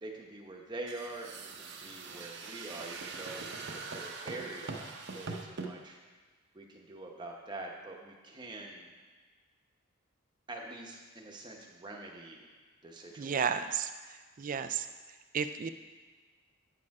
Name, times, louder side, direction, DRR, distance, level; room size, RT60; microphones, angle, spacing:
voice 1, 0.0-6.0 6.5-8.9 10.5-12.5 12.8-13.6, right 2 dB, 20° right, 0 dB, 1.0 m, -45 dB
sound 1, 0.9-5.7, right 4 dB, 55° right, 0.8 m, -42 dB
voice 2, 13.2-14.9 15.3-15.7, right 7 dB, 40° right, 10 dB, 0.4 m, -33 dB
8.7 x 6.6 x 4.8 m, 1.4 s
head